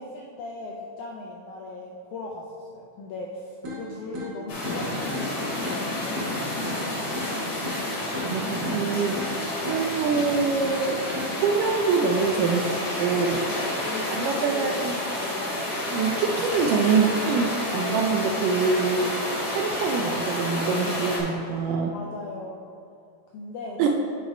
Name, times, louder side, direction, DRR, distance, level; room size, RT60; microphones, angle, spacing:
voice 1, 0.0-4.9 5.2-6.3 13.5-14.8 15.2-15.6 21.9-22.6 23.3-23.9, left 2 dB, 85° left, -2 dB, 1.7 m, -38 dB
sound 1, 3.6-11.6, left 1 dB, 45° right, 1.4 m, -37 dB
sound 2, 4.5-21.2, left 1 dB, 55° left, 2.8 m, -30 dB
voice 2, 8.2-9.2 9.5-11.0 11.3-13.5 14.1-14.9 15.9-19.1 19.5-22.0 23.8-23.9, right 5 dB, 80° right, 3 dB, 2.0 m, -25 dB
7.9 x 4.9 x 5.0 m, 2.6 s
omnidirectional pair, 4.2 m